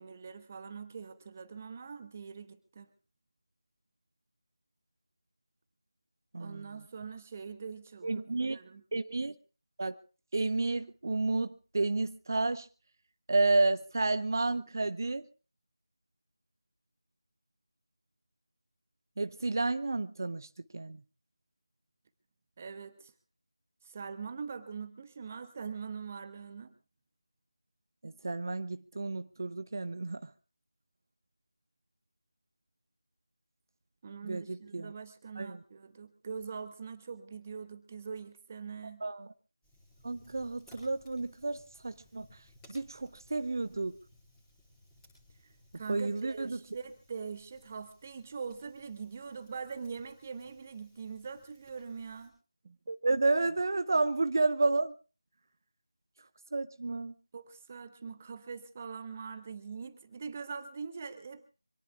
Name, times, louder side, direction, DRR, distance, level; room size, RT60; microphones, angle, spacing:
voice 1, 0.0-2.9 6.4-8.8 22.6-23.1 23.8-26.7 34.0-39.0 45.7-52.3 52.6-52.8 57.3-61.5, right 5 dB, 25° right, 1.1 m, -43 dB
voice 2, 6.3-6.7 8.0-8.6 8.9-9.3 9.8-10.0 10.3-12.7 13.3-15.2 19.2-21.0 28.0-30.3 34.2-34.9 35.4-35.6 39.0-39.3 40.0-41.6 41.8-42.3 42.7-43.9 45.9-46.6 52.9-54.9 56.5-57.1, right 3 dB, 45° right, 0.8 m, -31 dB
Fire, 39.6-52.3, left 1 dB, 5° left, 7.3 m, -62 dB
26.0 x 19.0 x 2.5 m
figure-of-eight pair, 165°, 3 cm